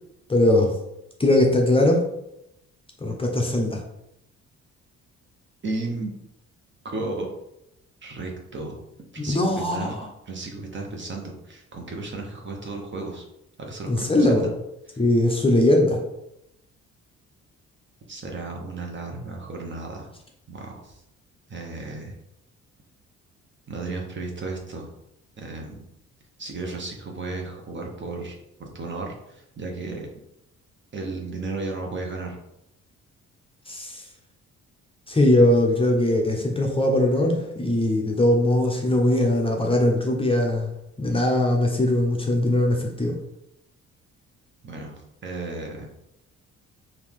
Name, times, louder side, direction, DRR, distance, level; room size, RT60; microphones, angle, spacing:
voice 1, 0.3-0.7 1.2-2.0 3.0-3.8 9.2-10.0 13.9-14.5 15.0-16.0 33.7-34.0 35.1-40.7 41.0-43.2, left 1 dB, 20° left, 1 dB, 0.8 m, -20 dB
voice 2, 5.6-6.1 6.8-7.3 8.0-8.8 9.1-9.9 10.3-13.2 13.6-14.5 18.1-20.1 20.5-21.0 21.5-22.2 23.7-24.9 25.4-25.8 26.4-30.1 30.9-32.4 44.6-45.9, right 3 dB, 40° right, 1 dB, 1.1 m, -34 dB
4.6 x 2.7 x 3.6 m, 0.83 s
cardioid pair, 90°, 30 cm